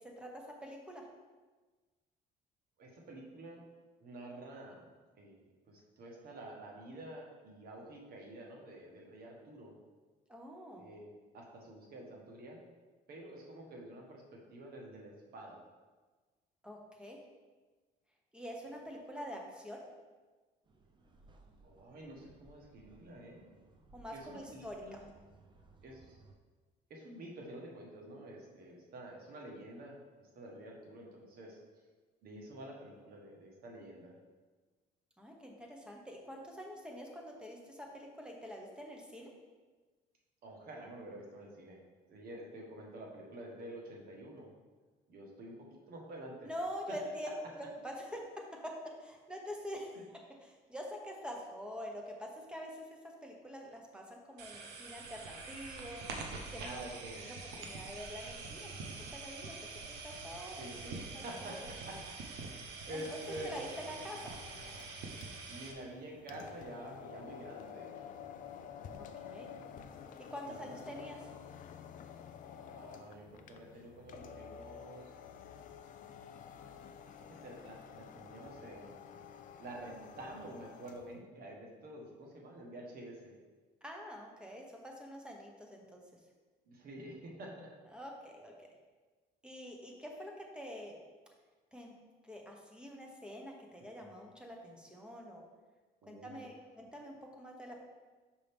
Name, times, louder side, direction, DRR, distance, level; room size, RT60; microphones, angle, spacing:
voice 1, 0.2-1.0 10.3-10.9 16.6-17.2 18.3-19.8 23.9-25.0 32.3-32.4 35.2-39.3 46.4-47.3 47.5-48.7 49.0-50.0 50.4-56.2 56.5-56.8 57.6-59.6 59.9-60.7 61.1-61.7 62.8-63.0 63.4-64.4 69.0-69.5 70.3-71.3 83.8-86.0 87.9-88.7 89.4-91.0 91.7-91.9 92.2-95.4 96.1-97.8, equal, 5° right, 0 dB, 1.1 m, -46 dB
voice 2, 2.8-3.6 4.0-4.9 5.2-9.7 10.8-12.6 13.1-15.6 21.6-23.5 24.1-25.1 25.8-26.2 26.9-29.9 30.3-31.6 32.2-34.1 40.4-41.8 42.1-44.5 45.1-46.5 46.9-47.0 47.2-47.3 56.6-57.3 60.5-62.5 62.9-63.6 65.5-68.1 70.5-70.7 72.6-75.1 77.0-79.1 79.6-83.3 86.7-87.7 94.0-94.1 96.0-96.4, right 1 dB, 60° right, -1 dB, 1.4 m, -48 dB
sound 1, 20.6-26.3, right 3 dB, 25° right, 0.7 m, -62 dB
sound 2, 54.4-65.7, right 4 dB, 80° right, 0.8 m, -45 dB
Electric recliner, 62.9-81.1, left 7 dB, 50° left, 0.4 m, -51 dB
5.5 x 5.2 x 3.6 m, 1.3 s
cardioid pair, 110°, 17 cm